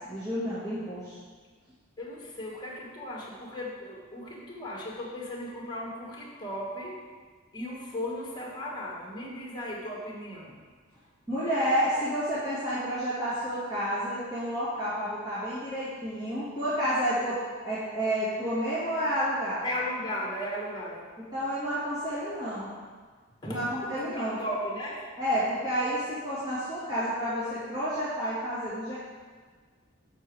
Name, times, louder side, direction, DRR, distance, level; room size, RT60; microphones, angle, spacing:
voice 1, 0.1-1.2 11.3-17.4 17.6-19.7 21.3-22.7 23.4-24.4 25.2-28.9, equal, 20° right, -13 dB, 2.1 m, -30 dB
voice 2, 2.0-7.0 7.5-10.5 19.6-21.1 23.4-25.1, left 1 dB, 20° left, -3 dB, 1.6 m, -36 dB
7.0 x 6.1 x 4.8 m, 1.5 s
head